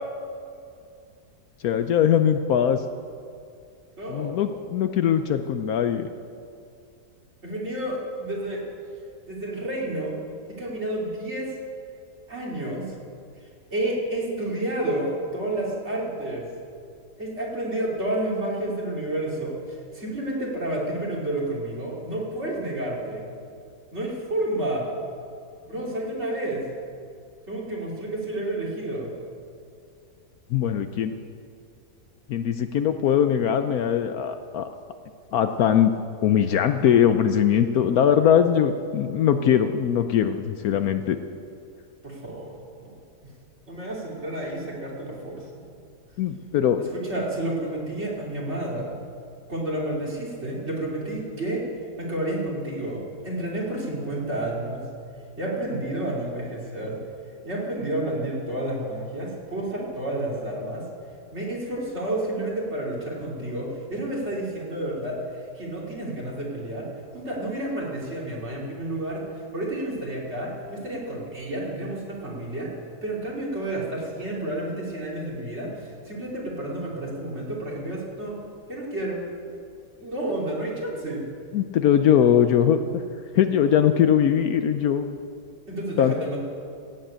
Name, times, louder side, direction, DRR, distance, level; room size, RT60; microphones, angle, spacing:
voice 1, 1.6-2.8 4.1-6.1 30.5-31.1 32.3-34.7 35.3-35.9 36.2-41.2 46.2-46.8 81.5-83.0 83.3-85.1 86.0-86.1, left 9 dB, 70° left, 8 dB, 1.0 m, -21 dB
voice 2, 4.0-4.3 7.4-8.6 9.3-10.1 10.6-11.5 12.3-12.9 13.7-16.5 17.2-23.2 23.9-24.9 25.6-26.7 27.5-29.1 42.0-43.0 43.2-43.3 43.7-45.5 46.8-49.0 49.5-51.6 52.0-54.8 55.4-57.0 57.4-60.8 61.3-65.2 65.5-66.9 67.1-69.2 69.5-72.7 73.0-78.4 78.7-79.2 80.0-81.3 85.7-86.4, right 1 dB, 40° right, -4 dB, 3.3 m, -30 dB
16.5 x 7.7 x 8.7 m, 2.5 s
omnidirectional pair, 1.8 m